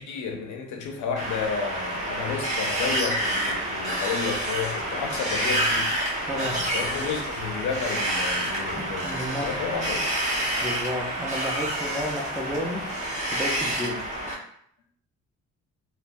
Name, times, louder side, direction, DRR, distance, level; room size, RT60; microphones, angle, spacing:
voice 1, 0.0-5.9 6.3-10.0, left 5 dB, 80° left, 3 dB, 0.6 m, -31 dB
Wind, 1.2-14.3, right 1 dB, 25° right, 1.1 m, -28 dB
voice 2, 6.3-6.7 8.8-9.5 10.6-12.8 13.3-14.0, equal, 10° right, -2 dB, 0.5 m, -32 dB
3.1 x 2.2 x 2.5 m, 0.67 s
cardioid pair, 90°, 30 cm